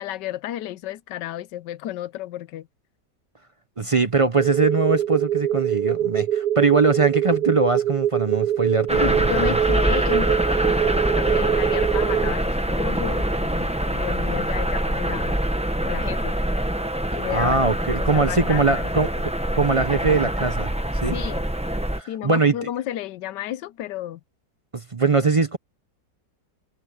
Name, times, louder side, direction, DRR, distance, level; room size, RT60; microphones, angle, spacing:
voice 1, 0.0-2.7 8.9-15.4 15.8-16.4 17.1-17.6 18.0-19.0 21.1-21.5 22.1-24.2, left 12 dB, 80° left, 1.3 m, -32 dB
voice 2, 3.8-9.3 17.3-20.7 21.0-21.1 22.0-22.5 24.7-25.6, right 4 dB, 45° right, 0.4 m, -21 dB
sound 1, 4.4-12.3, right 10 dB, 70° right, 1.3 m, -24 dB
sound 2, 8.9-22.0, right 1 dB, 5° right, 0.8 m, -24 dB
omnidirectional pair, 1.9 m